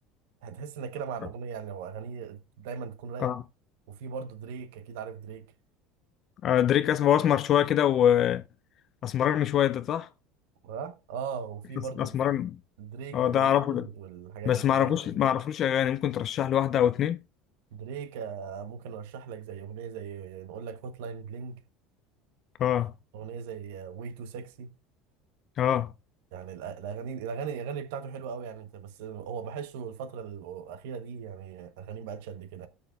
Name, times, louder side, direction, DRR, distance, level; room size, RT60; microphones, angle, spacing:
voice 1, 0.4-3.4 3.9-5.5 10.6-12.1 12.8-15.0 17.7-21.6 23.1-24.7 26.3-32.7, right 6 dB, 85° right, 0.8 m, -39 dB
voice 2, 6.4-8.4 9.0-10.1 12.0-12.6 13.1-13.9 14.5-17.2 22.6-22.9 25.6-25.9, left 10 dB, 40° left, 0.4 m, -24 dB
18.0 x 6.5 x 2.3 m
supercardioid pair, 135°, 0 cm